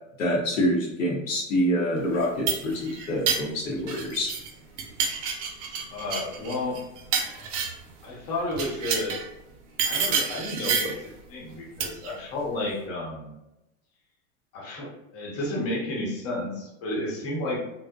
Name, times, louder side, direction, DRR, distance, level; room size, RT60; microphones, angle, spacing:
voice 1, 0.2-4.3, equal, 75° left, -3 dB, 0.8 m, -26 dB
sound 1, 2.1-4.5 4.8-7.9 8.5-9.3 9.8-11.0 11.8-12.1, right 6 dB, 60° right, 0.6 m, -29 dB
voice 2, 5.9-6.8 8.0-9.2 9.8-11.0 11.3-13.3 14.5-17.6, left 1 dB, 35° left, -3 dB, 0.9 m, -31 dB
2.6 x 2.1 x 2.2 m, 0.91 s
hypercardioid pair, 105°, 40 cm